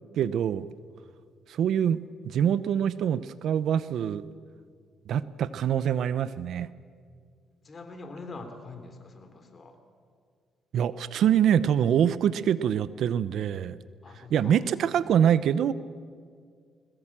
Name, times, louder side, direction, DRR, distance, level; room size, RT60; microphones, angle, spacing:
voice 1, 0.2-0.7 1.5-4.2 5.1-6.7 10.7-13.8 14.3-15.7, right 9 dB, 70° right, 16 dB, 0.7 m, -25 dB
voice 2, 7.6-9.8 14.0-14.6, left 3 dB, 40° left, 6 dB, 3.5 m, -44 dB
21.5 x 20.5 x 7.5 m, 2.1 s
cardioid pair, 90°, 0 cm